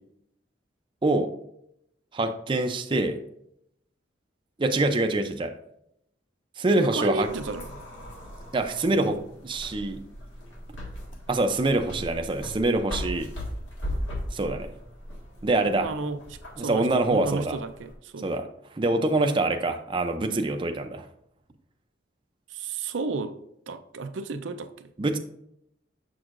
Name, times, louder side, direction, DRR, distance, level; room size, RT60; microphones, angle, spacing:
voice 1, 1.0-1.3 2.1-3.2 4.6-5.5 6.6-7.3 8.5-10.0 11.3-13.3 14.3-14.7 15.4-15.9 16.6-17.6 18.2-18.4 18.8-21.1 25.0-25.2, right 2 dB, 25° right, 6 dB, 0.5 m, -25 dB
voice 2, 6.7-7.8 13.9-14.0 15.6-18.3 22.5-23.3 23.7-24.9, right 3 dB, 80° right, 9 dB, 0.5 m, -33 dB
sound 1, 7.2-17.9, equal, 85° left, 1.6 m, -38 dB
7.0 x 6.2 x 2.5 m, 0.75 s
head